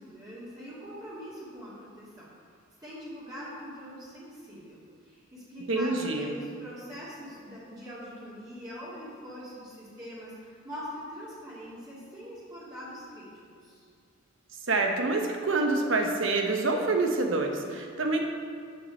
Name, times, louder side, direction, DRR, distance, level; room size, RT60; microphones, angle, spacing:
voice 1, 0.0-2.3 2.8-13.9, equal, 20° right, -10 dB, 2.5 m, -43 dB
voice 2, 5.7-6.3 14.7-18.2, right 3 dB, 70° right, 2 dB, 1.1 m, -27 dB
8.2 x 6.5 x 6.4 m, 2.2 s
head